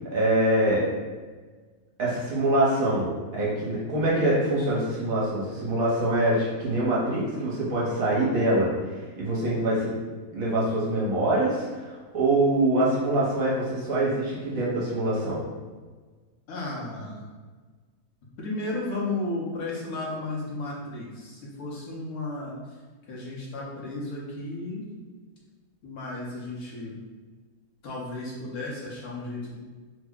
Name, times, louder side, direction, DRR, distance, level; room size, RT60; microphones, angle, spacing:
voice 1, 0.1-0.9 2.0-8.7 9.2-9.9 10.3-15.4, right 1 dB, 65° right, -6 dB, 1.2 m, -24 dB
voice 2, 16.5-17.3 18.4-22.8 23.1-24.9 25.8-26.9 27.8-29.6, left 2 dB, 70° left, -4 dB, 1.2 m, -34 dB
3.3 x 2.1 x 3.5 m, 1.4 s
omnidirectional pair, 1.7 m